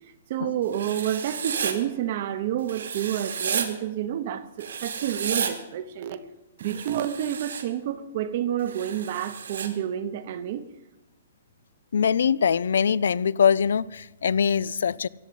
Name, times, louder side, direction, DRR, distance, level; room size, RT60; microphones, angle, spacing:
voice 1, 0.3-6.2 6.6-10.6, right 11 dB, 35° right, 0.9 m, -29 dB
Writing, 0.7-1.7 2.7-3.7 4.6-5.5 6.6-7.6 8.7-9.7, right 6 dB, 80° right, 2.3 m, -32 dB
voice 2, 11.9-15.1, left 7 dB, 75° left, 0.5 m, -23 dB
15.0 x 8.5 x 9.3 m
hypercardioid pair, 175°, 0 cm